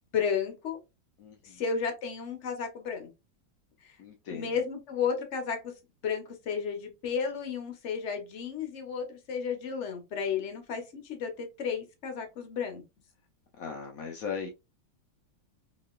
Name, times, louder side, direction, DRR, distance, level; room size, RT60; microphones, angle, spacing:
voice 1, 0.1-0.8 1.4-3.1 3.8-4.0 4.3-5.7 6.0-12.8, left 6 dB, 50° left, 1.0 m, -33 dB
voice 2, 1.2-1.6 4.0-4.6 13.6-14.5, left 6 dB, 75° left, 0.8 m, -38 dB
3.9 x 3.0 x 2.3 m
omnidirectional pair, 2.1 m